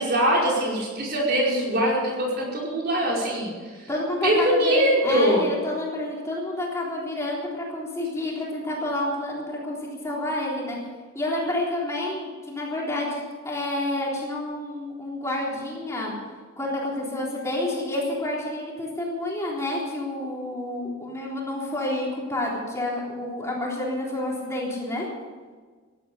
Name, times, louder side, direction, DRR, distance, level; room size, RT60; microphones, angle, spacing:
voice 1, 0.0-3.5 4.2-5.4, equal, 45° right, -3 dB, 4.9 m, -22 dB
voice 2, 3.9-10.8 11.1-16.1 16.6-25.0, left 1 dB, 15° left, -4 dB, 3.6 m, -29 dB
16.5 x 11.5 x 6.9 m, 1.5 s
head